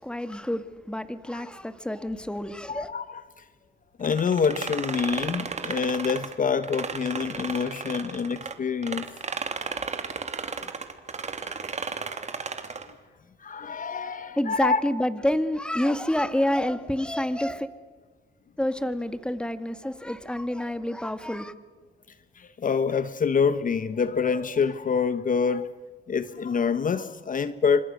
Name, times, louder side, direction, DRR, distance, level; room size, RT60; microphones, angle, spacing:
voice 1, 0.0-2.9 14.4-17.7 18.6-21.5, left 1 dB, 5° left, 1.9 m, -28 dB
voice 2, 2.7-3.4 4.0-9.1 9.6-10.0 10.6-10.7 11.4-11.6 12.9-13.0 13.4-14.8 15.8-15.9 22.3-25.7 26.1-27.8, left 6 dB, 40° left, 1.1 m, -26 dB
sound 1, 4.0-8.5 8.8-12.9, right 5 dB, 35° right, 3.0 m, -34 dB
29.5 x 26.0 x 6.5 m
cardioid pair, 90°, 20 cm